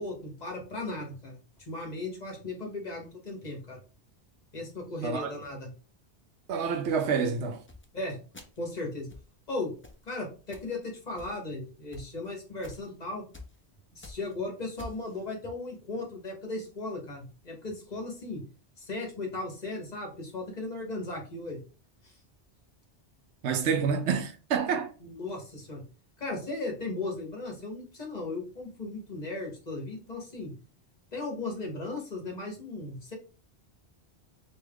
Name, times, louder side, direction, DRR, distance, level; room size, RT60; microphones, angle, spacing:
voice 1, 0.0-1.4 1.7-3.8 4.5-5.7 7.9-8.2 8.6-9.1 9.5-9.7 10.1-13.2 13.9-18.4 18.8-21.6 22.0-22.1 25.0-25.8 26.2-30.5 31.1-33.1, left 2 dB, 40° left, 1.1 m, -36 dB
voice 2, 6.5-7.6 23.4-24.9, right 6 dB, 85° right, 0.9 m, -28 dB
sound 1, 7.7-7.8 8.3-8.7 9.1-9.3 9.8-10.0 10.5-10.7 11.1-11.5 11.9-12.0 12.6-12.9 13.3-13.5 13.9-14.3 14.8-15.1, left 3 dB, 20° left, 0.3 m, -46 dB
3.5 x 2.9 x 3.4 m
omnidirectional pair, 1.1 m